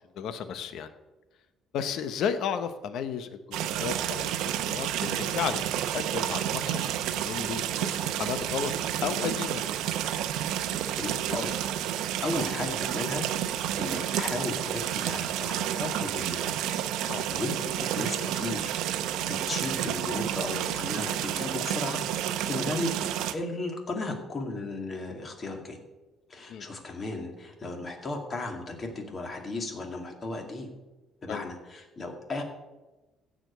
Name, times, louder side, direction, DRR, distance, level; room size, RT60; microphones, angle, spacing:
voice 1, 0.2-0.9 1.7-8.7 9.0-9.6 17.1-17.2 26.5-26.6 31.3-31.4, left 7 dB, 65° left, 10 dB, 1.0 m, -33 dB
sound 1, 3.5-23.3, right 11 dB, 85° right, 0.8 m, -30 dB
voice 2, 11.0-11.5 12.2-13.2 13.8-16.5 17.0-22.0 22.5-23.0 23.3-25.8 26.3-30.7 31.2-32.4, left 2 dB, 30° left, 3 dB, 2.2 m, -35 dB
15.5 x 5.1 x 8.1 m, 1.1 s
cardioid pair, 145°, 0 cm